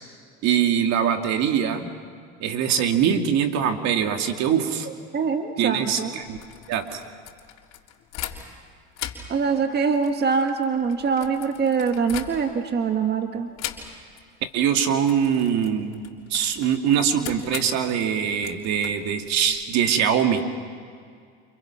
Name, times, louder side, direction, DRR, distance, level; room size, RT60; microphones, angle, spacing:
voice 1, 0.4-1.9 2.4-4.9 5.6-6.4 6.7-7.0 14.5-16.0 16.3-20.4, right 8 dB, 60° right, 5 dB, 2.6 m, -23 dB
voice 2, 5.1-6.1 9.3-13.5, right 5 dB, 35° right, 6 dB, 1.9 m, -24 dB
sound 1, 6.2-8.7 8.9-12.7 13.6-14.3 14.5-14.7 15.0-19.6, left 11 dB, 60° left, 3.6 m, -39 dB
30.0 x 28.5 x 6.0 m, 2.1 s
supercardioid pair, 90°, 31 cm